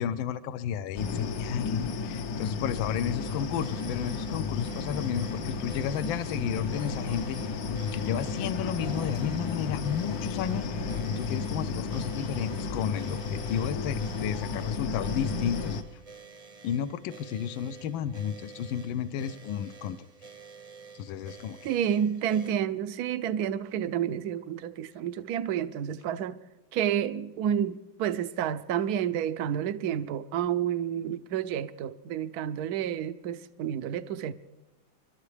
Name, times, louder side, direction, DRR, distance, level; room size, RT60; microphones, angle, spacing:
voice 1, 0.0-7.6 7.9-10.7 11.2-15.8 16.6-20.0 20.9-21.7, left 9 dB, 75° left, 1.4 m, -32 dB
sound 1, 1.0-15.8, left 4 dB, 60° left, 1.1 m, -33 dB
sound 2, 3.2-22.5, right 5 dB, 30° right, 0.7 m, -50 dB
voice 2, 21.6-26.4 26.7-34.3, right 9 dB, 65° right, 1.0 m, -30 dB
28.0 x 12.5 x 3.3 m
omnidirectional pair, 2.2 m